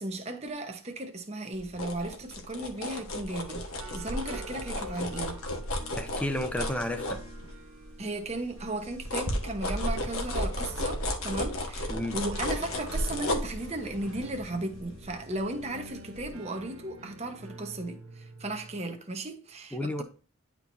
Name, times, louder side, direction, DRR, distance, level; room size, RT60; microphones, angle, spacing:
voice 1, 0.0-3.6 3.9-5.4 8.0-20.0, right 2 dB, 30° right, 1.0 m, -35 dB
sound 1, 1.5-7.8 8.2-15.8 16.2-16.3, left 1 dB, 90° left, 1.5 m, -34 dB
sound 2, 3.1-18.8, right 1 dB, 80° right, 1.1 m, -48 dB
voice 2, 6.0-7.2 11.9-12.1 19.7-20.0, left 1 dB, 5° left, 0.7 m, -32 dB
10.5 x 4.6 x 2.7 m
head